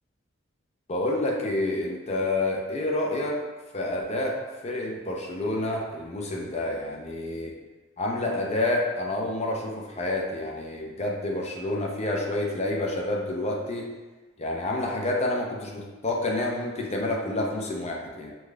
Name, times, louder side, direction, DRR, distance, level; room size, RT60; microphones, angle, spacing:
voice 1, 0.9-3.4 3.7-7.6 8.0-13.9 14.4-18.3, left 1 dB, 30° left, -1 dB, 0.6 m, -28 dB
5.4 x 2.3 x 3.3 m, 1.2 s
head